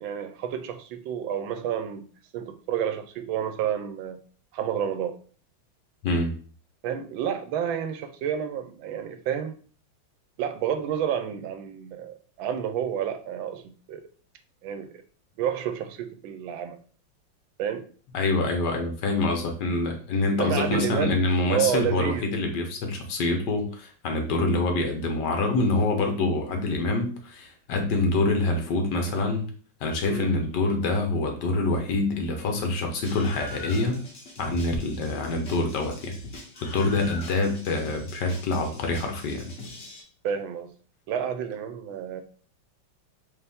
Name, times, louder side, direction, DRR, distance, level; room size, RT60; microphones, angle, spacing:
voice 1, 0.0-2.1 2.3-4.2 4.5-5.2 6.8-9.6 10.4-13.6 13.9-14.0 14.6-14.9 15.4-16.8 17.6-17.9 20.3-21.2 21.5-22.3 30.0-30.3 40.2-40.7 41.1-42.2, right 9 dB, 85° right, 8 dB, 1.4 m, -30 dB
voice 2, 6.0-6.3 18.1-29.5 29.8-34.0 34.4-36.1 36.6-39.5, left 2 dB, 65° left, 3 dB, 1.3 m, -26 dB
Screaming, 33.0-40.0, left 2 dB, 45° left, 1.0 m, -42 dB
5.0 x 2.6 x 3.4 m, 0.41 s
omnidirectional pair, 2.1 m